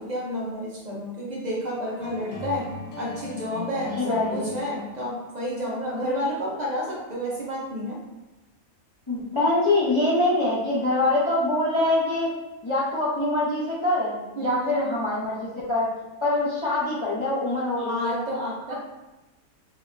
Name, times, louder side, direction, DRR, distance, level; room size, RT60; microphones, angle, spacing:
voice 1, 0.0-2.7 3.0-8.0 14.4-14.8 17.8-18.7, equal, 65° right, -4 dB, 0.4 m, -30 dB
sound 1, 2.0-5.2, left 4 dB, 75° left, 1.1 m, -39 dB
voice 2, 3.9-4.5 9.1-12.3 12.6-15.9 16.2-18.2 18.7-18.8, left 2 dB, 40° left, -8 dB, 0.4 m, -24 dB
4.8 x 2.1 x 2.4 m, 1.0 s
omnidirectional pair, 1.5 m